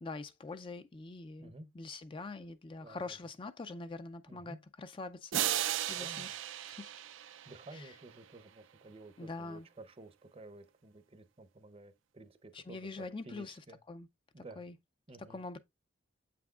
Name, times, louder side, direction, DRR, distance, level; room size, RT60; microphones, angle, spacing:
voice 1, 0.0-5.4 5.9-6.4 6.7-6.9 7.7-7.9 9.2-9.7 12.5-13.6 13.9-14.1 14.6-14.7 15.3-15.6, left 3 dB, 25° left, 0.4 m, -44 dB
voice 2, 1.4-1.7 2.8-3.2 4.3-4.6 6.0-6.3 7.5-13.8 14.3-14.7 15.1-15.4, right 2 dB, 30° right, 0.7 m, -53 dB
sound 1, 5.3-8.0, right 12 dB, 75° right, 0.4 m, -35 dB
7.8 x 5.9 x 2.3 m
head